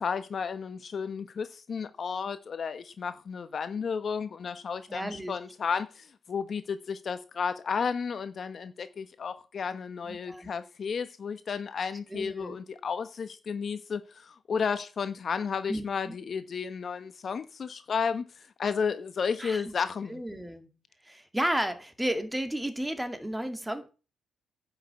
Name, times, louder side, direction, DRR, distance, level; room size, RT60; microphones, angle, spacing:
voice 1, 0.0-20.2, left 6 dB, 45° left, 1.1 m, -33 dB
voice 2, 4.9-5.4 10.0-10.5 12.1-12.6 15.7-16.1 19.4-19.7 20.1-20.8 21.0-23.9, right 1 dB, 5° right, 2.3 m, -33 dB
10.5 x 6.3 x 8.2 m
cardioid pair, 90°, 0 cm